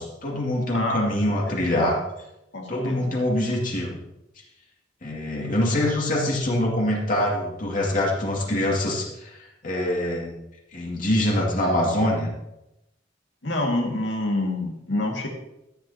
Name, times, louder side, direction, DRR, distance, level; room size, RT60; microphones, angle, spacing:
voice 1, 0.0-2.0 2.7-4.0 5.0-10.3 10.7-12.3, left 1 dB, 45° left, -3 dB, 2.3 m, -24 dB
voice 2, 0.7-1.2 2.5-3.2 13.4-15.3, left 1 dB, 80° left, 1 dB, 2.0 m, -27 dB
13.5 x 8.7 x 2.9 m, 0.88 s
head